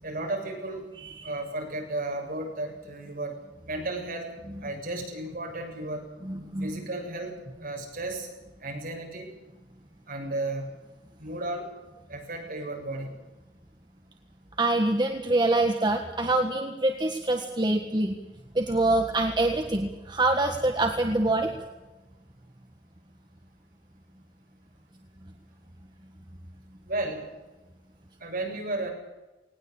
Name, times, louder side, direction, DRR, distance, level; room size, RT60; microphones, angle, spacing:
voice 1, 0.0-0.8 1.2-3.3 3.7-4.3 4.6-6.1 6.6-8.3 8.6-9.3 10.1-10.8 11.2-11.7 12.1-13.2 26.9-27.2 28.2-28.9, right 2 dB, 55° right, 1 dB, 7.3 m, -33 dB
voice 2, 1.0-1.3 6.2-6.8 14.6-18.2 18.5-21.5, right 2 dB, 25° right, 4 dB, 1.6 m, -25 dB
19.5 x 19.0 x 8.6 m, 1.1 s
head